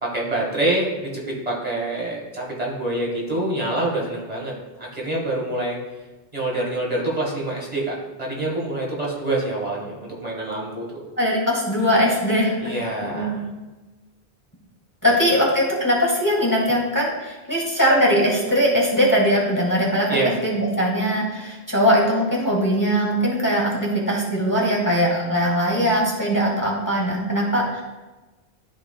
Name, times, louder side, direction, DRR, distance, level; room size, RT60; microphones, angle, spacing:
voice 1, 0.0-5.8 6.3-10.9 12.6-13.4 20.1-20.4, right 2 dB, 40° right, -3 dB, 1.6 m, -26 dB
voice 2, 11.2-12.7 13.0-13.4 15.0-27.8, equal, 20° left, -4 dB, 1.6 m, -21 dB
13.0 x 4.7 x 2.2 m, 1.1 s
omnidirectional pair, 1.1 m